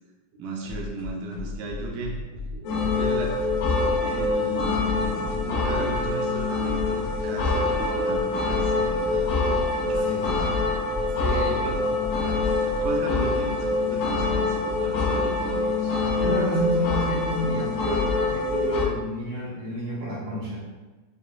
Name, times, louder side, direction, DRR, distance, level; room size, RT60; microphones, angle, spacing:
voice 1, 0.4-2.2 2.9-3.4 4.0-9.3 9.7-10.1 11.6-11.8 12.8-16.0 16.5-16.7, right 3 dB, 80° right, 0 dB, 2.0 m, -35 dB
sound 1, 0.6-12.9, left 3 dB, 60° left, 1.5 m, -35 dB
sound 2, 2.6-18.9, left 3 dB, 75° left, 2.2 m, -25 dB
voice 2, 9.9-10.5 11.2-11.6 16.1-20.6, right 1 dB, 65° right, -8 dB, 1.6 m, -30 dB
6.7 x 2.5 x 2.3 m, 1.2 s
omnidirectional pair, 3.8 m